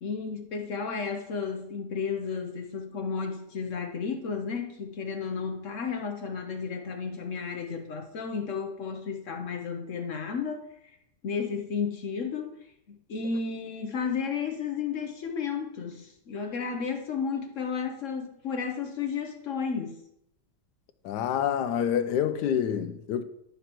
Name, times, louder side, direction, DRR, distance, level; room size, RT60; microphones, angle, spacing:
voice 1, 0.0-10.6 11.2-12.5 12.9-20.0, left 5 dB, 60° left, 0.9 m, -33 dB
voice 2, 21.0-23.2, left 9 dB, 75° left, 1.1 m, -27 dB
10.5 x 6.8 x 2.9 m
omnidirectional pair, 1.9 m